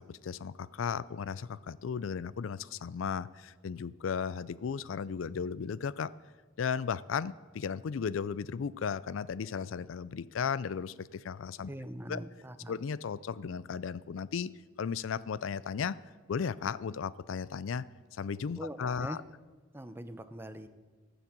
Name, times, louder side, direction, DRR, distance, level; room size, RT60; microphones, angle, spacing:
voice 1, 0.0-6.1 6.6-11.7 12.1-12.2 12.7-14.5 14.8-16.0 16.3-17.8 18.1-19.2, left 6 dB, 85° left, 18 dB, 0.4 m, -35 dB
voice 2, 11.7-12.8 18.6-19.2 19.7-20.7, right 1 dB, 10° right, 11 dB, 0.6 m, -42 dB
14.5 x 7.1 x 7.3 m, 1.3 s
head